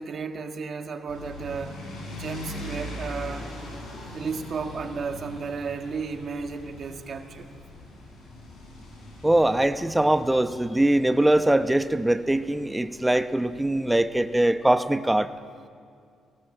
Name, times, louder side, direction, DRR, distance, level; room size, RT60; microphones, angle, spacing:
voice 1, 0.0-1.8 2.2-3.5 4.1-7.5, right 5 dB, 50° right, 6 dB, 1.8 m, -33 dB
sound 1, 1.1-14.5, left 1 dB, 85° left, 6.3 m, -42 dB
voice 2, 9.2-15.3, right 1 dB, 10° right, 10 dB, 0.9 m, -22 dB
18.5 x 18.0 x 7.8 m, 2.3 s
cardioid pair, 90°, 0 cm